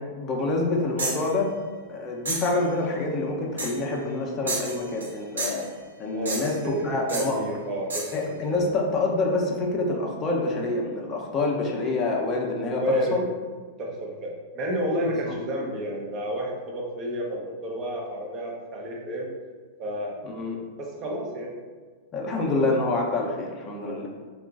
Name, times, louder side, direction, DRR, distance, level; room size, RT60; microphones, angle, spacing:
voice 1, 0.1-1.5 1.9-5.6 6.0-7.4 8.1-13.2 15.0-15.4 20.2-20.6 22.1-24.1, left 2 dB, 35° left, 0 dB, 0.6 m, -27 dB
sound 1, 1.0-1.3 2.3-2.6 3.6-3.9 4.5-5.1 5.4-5.7 6.3-6.7 7.1-7.3 7.9-8.2, right 2 dB, 90° right, 0.7 m, -31 dB
voice 2, 7.1-8.4 12.8-13.2 13.8-19.3 19.8-20.2 20.8-21.6 23.8-24.1, equal, 35° right, -2 dB, 0.7 m, -30 dB
3.6 x 2.3 x 2.4 m, 1.5 s
hypercardioid pair, 105°, 0 cm